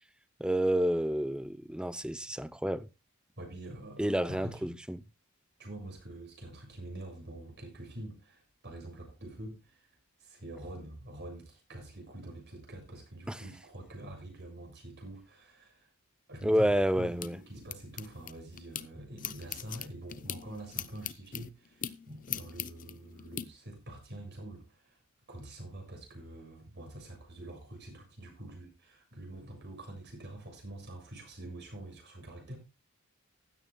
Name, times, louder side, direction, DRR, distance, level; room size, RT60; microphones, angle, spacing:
voice 1, 0.4-2.9 4.0-5.0 13.3-13.4 16.4-17.4, equal, 5° right, 0.6 m, -29 dB
voice 2, 3.4-4.8 5.6-9.9 10.2-15.9 16.3-25.0 25.3-32.6, right 1 dB, 55° right, 7.0 m, -46 dB
sound 1, 16.5-18.9 19.2-23.4, left 10 dB, 40° left, 0.7 m, -41 dB
16.0 x 12.5 x 2.2 m
head